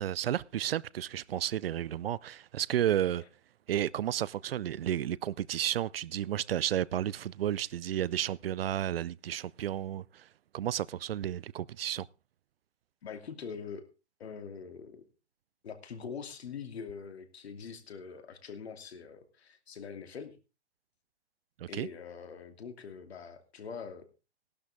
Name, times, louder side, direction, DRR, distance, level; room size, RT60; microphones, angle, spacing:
voice 1, 0.0-3.2 3.7-10.3 10.5-12.1 21.6-21.9, right 11 dB, 60° right, 0.6 m, -32 dB
voice 2, 13.0-13.9 14.2-15.0 15.6-20.4 21.7-24.1, left 6 dB, 65° left, 2.7 m, -43 dB
17.5 x 12.0 x 3.5 m
hypercardioid pair, 135°, 34 cm